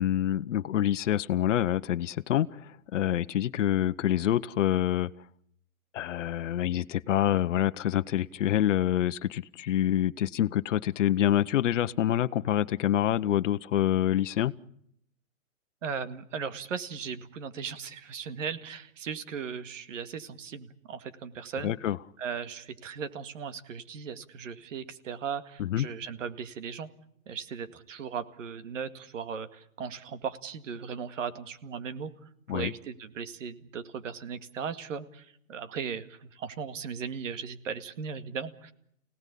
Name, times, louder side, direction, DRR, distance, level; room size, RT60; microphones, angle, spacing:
voice 1, 0.0-2.6 2.9-5.1 5.9-14.5 21.6-22.0 25.6-25.9 32.5-32.7, left 11 dB, 65° left, 12 dB, 1.1 m, -26 dB
voice 2, 15.8-21.7 22.2-26.9 27.3-32.1 32.5-38.7, right 6 dB, 65° right, 11 dB, 2.1 m, -37 dB
29.0 x 18.0 x 8.5 m, 0.72 s
hypercardioid pair, 160°, 40 cm